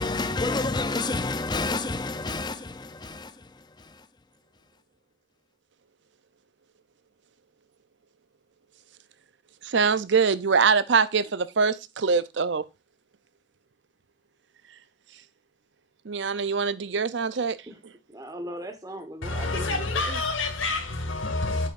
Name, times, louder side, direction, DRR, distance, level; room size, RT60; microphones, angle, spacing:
voice 1, 0.0-4.1, left 3 dB, 20° left, 0.5 m, -29 dB
voice 2, 9.6-12.6 16.1-17.6, right 5 dB, 65° right, 0.6 m, -23 dB
voice 3, 18.1-20.2, right 1 dB, 20° right, 1.4 m, -38 dB
voice 4, 19.2-21.7, left 2 dB, 85° left, 2.2 m, -28 dB
8.5 x 6.9 x 2.5 m
head